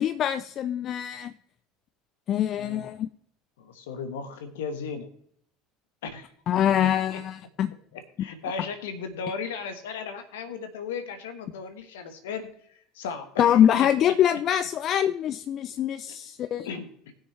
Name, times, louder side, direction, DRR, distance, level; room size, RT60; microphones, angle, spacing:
voice 1, 0.0-1.3 2.3-3.1 6.5-7.7 13.4-16.7, left 10 dB, 45° left, 11 dB, 0.4 m, -24 dB
voice 2, 3.6-5.1 6.0-6.3 6.8-7.2 7.9-12.5 12.9-14.2 16.1-16.2 16.6-17.1, left 5 dB, 75° left, 8 dB, 1.4 m, -36 dB
19.0 x 6.4 x 3.3 m, 0.66 s
hypercardioid pair, 70°, 0 cm